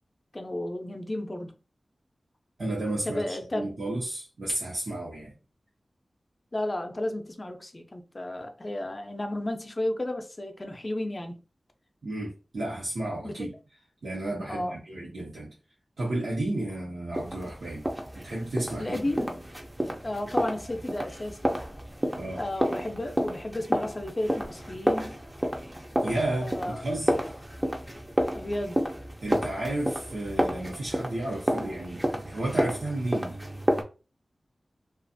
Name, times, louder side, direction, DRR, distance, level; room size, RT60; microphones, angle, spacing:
voice 1, 0.3-1.5 3.1-3.8 6.5-11.4 13.2-13.4 14.5-14.8 18.8-19.4 20.0-21.6 22.4-25.2 26.4-26.8 28.3-28.8, left 1 dB, 35° left, 0.5 m, -33 dB
voice 2, 2.6-5.3 12.0-13.5 14.0-15.5 16.0-17.9 18.1-19.0 22.2-22.4 26.0-27.3 29.2-33.4, right 1 dB, 85° right, 0.9 m, -32 dB
sound 1, 17.1-33.8, equal, 15° right, 0.5 m, -31 dB
2.4 x 2.4 x 2.6 m
wide cardioid pair, 60°, 0 cm